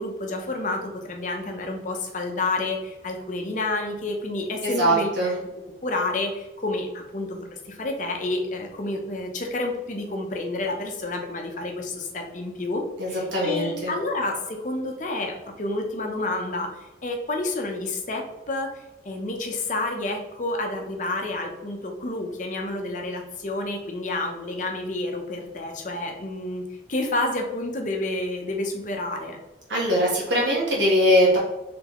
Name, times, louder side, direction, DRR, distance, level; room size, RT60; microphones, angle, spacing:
voice 1, 0.0-5.1 5.8-18.7 19.0-26.6 26.9-29.4, left 2 dB, 40° left, 2 dB, 0.6 m, -29 dB
voice 2, 4.6-5.3 13.0-13.9 29.7-31.4, equal, 80° right, -3 dB, 1.2 m, -21 dB
4.0 x 3.3 x 3.0 m, 1.0 s
head